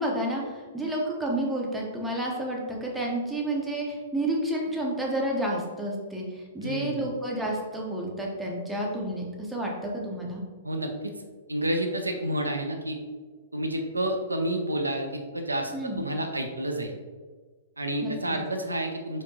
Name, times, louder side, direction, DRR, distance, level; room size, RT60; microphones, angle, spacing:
voice 1, 0.0-10.4 15.7-16.0 18.0-18.1, right 1 dB, 5° right, -3 dB, 0.7 m, -30 dB
voice 2, 6.6-7.0 10.6-11.1 11.5-13.0 13.5-16.9 17.8-19.2, right 1 dB, 85° right, 4 dB, 0.4 m, -29 dB
4.4 x 2.6 x 2.7 m, 1.4 s
figure-of-eight pair, 110°, 0 cm